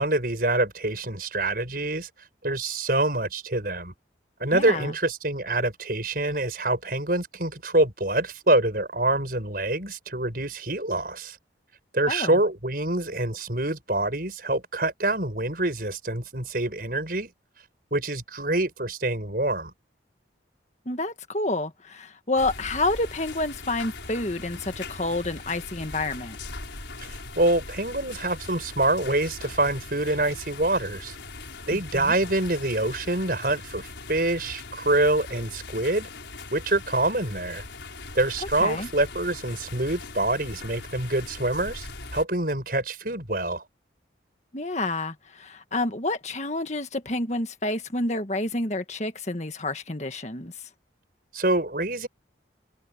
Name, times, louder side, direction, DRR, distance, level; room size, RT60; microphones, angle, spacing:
voice 1, 0.0-2.1 2.4-3.9 4.4-11.4 11.9-17.3 17.9-19.7 27.4-31.1 31.7-36.1 36.5-37.6 38.1-43.6 51.3-52.1, right 2 dB, 50° right, 6.5 m, -26 dB
voice 2, 4.5-4.9 12.1-12.4 20.8-26.4 31.7-32.1 38.6-38.9 44.5-50.5, left 2 dB, 40° left, 1.7 m, -29 dB
sound 1, 22.4-42.2, left 3 dB, 80° left, 4.9 m, -40 dB
head